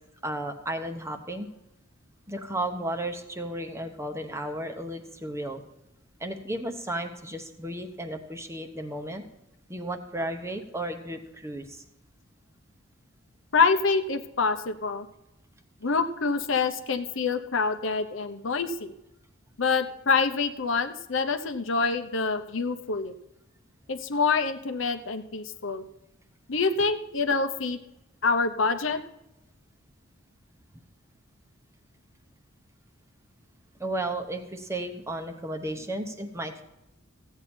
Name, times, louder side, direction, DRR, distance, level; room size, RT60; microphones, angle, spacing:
voice 1, 0.2-1.5 2.3-5.6 6.2-9.2 9.7-11.8 33.8-36.6, right 1 dB, 15° right, 5 dB, 0.9 m, -34 dB
voice 2, 13.5-15.1 15.8-18.9 19.6-23.1 23.9-25.8 26.5-27.8 28.2-29.0, left 4 dB, 65° left, 8 dB, 0.8 m, -26 dB
15.0 x 8.7 x 4.4 m, 0.91 s
head